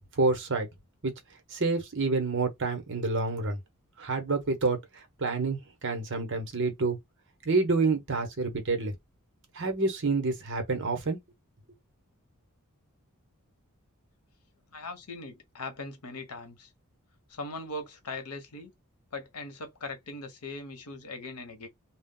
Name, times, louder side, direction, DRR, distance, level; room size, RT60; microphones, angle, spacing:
voice 1, 0.2-0.7 1.0-1.1 1.5-3.6 4.0-7.0 7.4-8.9 9.5-11.2, right 3 dB, 55° right, 1.0 m, -28 dB
voice 2, 14.7-16.7 17.3-18.7 19.1-21.7, left 2 dB, 85° left, 0.9 m, -40 dB
2.3 x 2.1 x 3.7 m
head